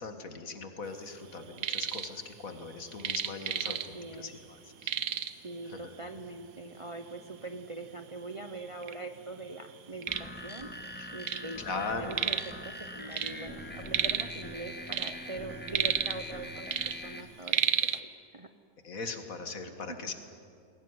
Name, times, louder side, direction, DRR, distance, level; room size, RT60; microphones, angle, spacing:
voice 1, 0.0-4.9 5.7-5.8 11.0-11.1 11.6-12.2 18.8-20.1, left 4 dB, 65° left, 7 dB, 2.1 m, -39 dB
sound 1, 1.3-2.1 2.4-4.2 4.4-4.5 4.8-5.5 6.3-6.4 6.9-7.0 7.7-7.8 8.1-8.9 9.4-11.5 11.8-12.6 12.9-14.4 14.7-16.4 16.7-18.0, right 9 dB, 70° right, 1.3 m, -32 dB
voice 2, 3.6-4.3 5.4-10.7 11.1-12.4 12.6-16.7 17.0-18.5 20.0-20.1, right 2 dB, 30° right, 7 dB, 0.7 m, -43 dB
sound 2, 10.1-17.2, left 1 dB, 5° left, 1.3 m, -43 dB
21.0 x 17.5 x 9.7 m, 2.5 s
omnidirectional pair, 1.6 m